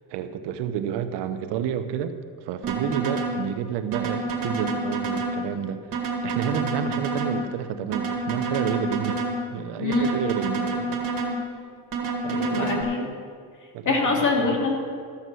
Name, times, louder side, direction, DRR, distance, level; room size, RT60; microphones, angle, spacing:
voice 1, 0.0-2.1 2.5-5.8 6.2-9.3 9.5-11.3 12.2-12.9 13.7-14.1 14.5-14.6, right 8 dB, 80° right, 10 dB, 0.9 m, -30 dB
sound 1, 2.6-3.4 3.9-5.4 5.9-7.4 7.9-9.4 9.9-11.4 11.9-12.8, right 4 dB, 55° right, 2.1 m, -28 dB
voice 2, 9.8-10.4 12.3-13.1 13.8-14.7, left 4 dB, 45° left, -1 dB, 2.9 m, -24 dB
14.5 x 6.7 x 6.3 m, 2.1 s
cardioid pair, 110°, 41 cm